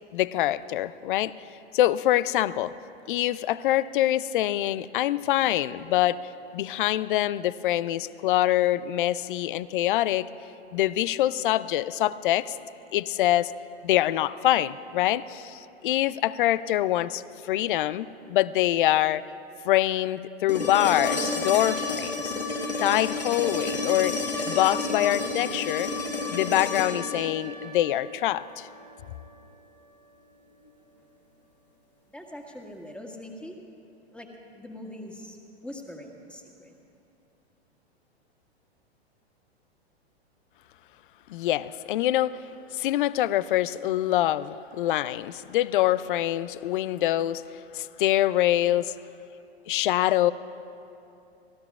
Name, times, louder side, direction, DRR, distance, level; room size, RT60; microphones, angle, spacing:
voice 1, 0.1-1.3 1.7-2.7 3.1-6.2 6.5-10.3 10.7-12.6 12.9-13.5 13.8-17.2 17.5-19.2 19.6-22.3 22.8-24.2 24.5-25.9 26.3-28.7 41.3-42.4 42.7-47.4 47.7-48.9 49.7-50.3, left 14 dB, 50° left, 18 dB, 0.5 m, -25 dB
sound 1, 20.5-28.5 30.7-30.8, left 3 dB, 80° left, 2.5 m, -31 dB
voice 2, 32.1-33.6 34.1-34.3 34.5-36.8, left 1 dB, 5° left, 1 dB, 1.8 m, -42 dB
29.5 x 19.0 x 2.4 m, 2.8 s
figure-of-eight pair, 105°, 33 cm